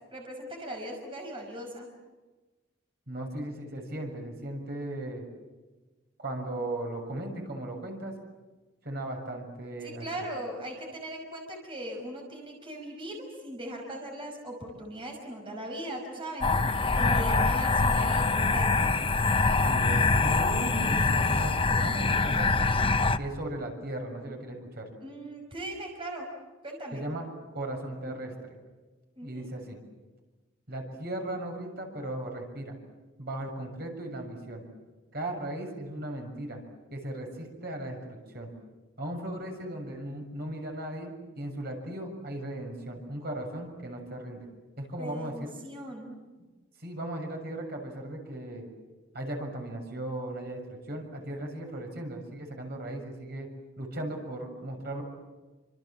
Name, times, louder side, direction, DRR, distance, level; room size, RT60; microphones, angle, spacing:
voice 1, 0.1-1.9 9.8-18.8 25.0-26.3 26.6-27.0 29.2-29.5 45.0-46.2, right 1 dB, 30° right, 1 dB, 5.6 m, -39 dB
voice 2, 3.1-5.2 6.2-8.1 8.8-10.1 19.6-22.6 23.2-24.9 26.9-27.3 27.5-28.6 29.2-29.8 30.7-32.8 33.2-34.6 35.1-36.6 36.9-38.5 39.0-44.5 44.8-45.5 46.8-48.7 49.1-53.5 53.8-55.0, right 1 dB, 55° right, 2 dB, 6.9 m, -37 dB
sound 1, 16.4-23.2, left 3 dB, 30° left, 0.9 m, -24 dB
30.0 x 26.5 x 7.5 m, 1.2 s
head